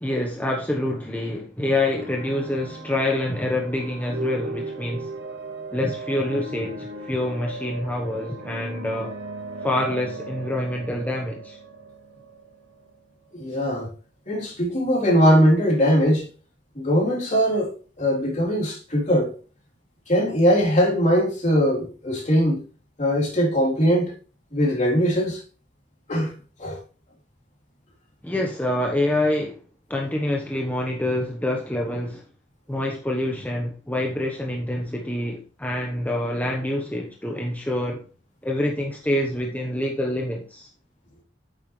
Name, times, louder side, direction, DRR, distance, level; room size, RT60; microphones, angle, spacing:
voice 1, 0.0-5.1 5.7-9.1 9.6-11.6 28.2-29.6 29.9-32.2 32.7-38.0 38.4-40.7, left 1 dB, 10° left, 1.0 m, -26 dB
sound 1, 1.8-13.5, right 2 dB, 70° right, 1.8 m, -37 dB
voice 2, 13.3-13.9 14.3-16.3 16.8-19.3 20.1-22.6 23.0-24.1 24.5-25.4 26.1-26.3 26.6-26.8, equal, 40° left, 3.5 m, -21 dB
9.5 x 7.8 x 3.2 m
head